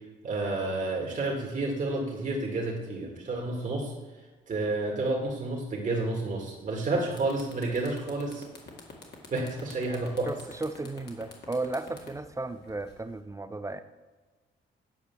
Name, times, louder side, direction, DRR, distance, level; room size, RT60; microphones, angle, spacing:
voice 1, 0.2-3.9 4.5-8.5 9.3-10.3, right 2 dB, 40° right, -1 dB, 2.0 m, -30 dB
sound 1, 6.7-6.8 7.1-13.2, left 4 dB, 55° left, 2.1 m, -48 dB
voice 2, 10.3-13.8, right 2 dB, 15° right, 11 dB, 0.5 m, -34 dB
9.1 x 4.9 x 7.0 m, 1.3 s
cardioid pair, 90°, 20 cm